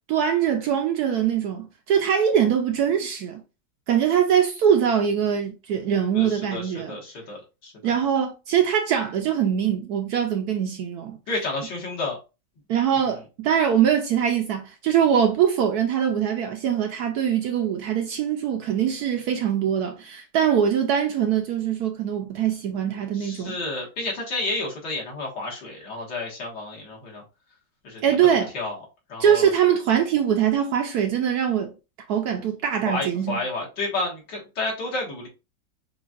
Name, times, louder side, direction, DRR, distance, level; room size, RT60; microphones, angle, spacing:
voice 1, 0.1-3.4 3.9-7.0 7.8-11.2 12.7-23.6 28.0-28.5 29.2-31.7 32.1-33.4, right 8 dB, 70° right, 1.0 m, -22 dB
voice 2, 6.1-7.7 11.3-12.2 13.0-13.2 23.1-27.2 27.8-28.0 28.5-28.8 29.1-29.5 32.9-35.3, left 2 dB, 70° left, 2.2 m, -31 dB
6.8 x 2.4 x 2.4 m
omnidirectional pair, 2.0 m